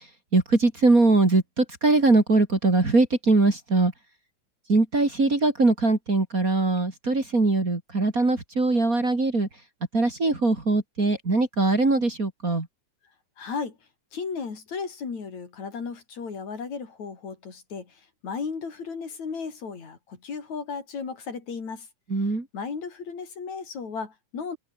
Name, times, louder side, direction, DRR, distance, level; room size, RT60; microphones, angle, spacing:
voice 1, 0.3-3.9 4.7-9.5 9.9-12.7 22.1-22.4, right 3 dB, 25° right, 3.5 m, -21 dB
voice 2, 13.4-13.8 14.1-18.0 18.2-21.9 22.5-24.6, left 5 dB, 65° left, 5.2 m, -35 dB
open air
omnidirectional pair, 3.5 m